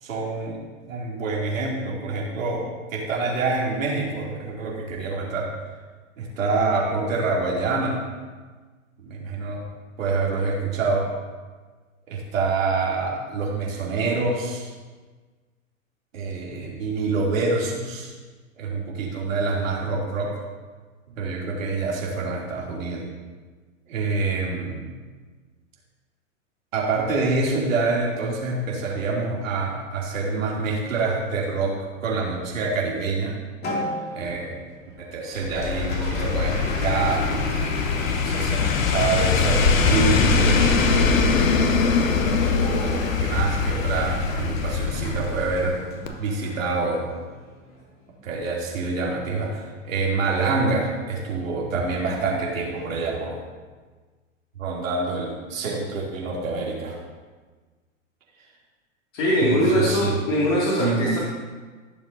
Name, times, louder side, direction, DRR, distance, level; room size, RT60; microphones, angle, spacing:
voice 1, 0.0-2.6 2.9-5.5 6.2-8.0 9.0-9.6 10.0-11.1 12.1-14.7 16.1-18.1 18.6-20.3 21.2-23.0 23.9-24.8 26.7-33.3 34.1-34.6 35.0-37.2 38.2-40.9 42.6-45.8 46.2-47.1 48.2-53.4 54.6-57.0 59.4-60.2 60.8-61.1, right 3 dB, 75° right, -4 dB, 3.0 m, -26 dB
Applause, 33.6-48.3, left 1 dB, 25° left, 2.7 m, -38 dB
sound 1, 35.4-45.8 46.1-46.2, left 4 dB, 75° left, 1.1 m, -22 dB
voice 2, 59.1-61.2, equal, 45° left, -7 dB, 2.5 m, -21 dB
15.5 x 7.0 x 2.8 m, 1.4 s
hypercardioid pair, 110°, 40 cm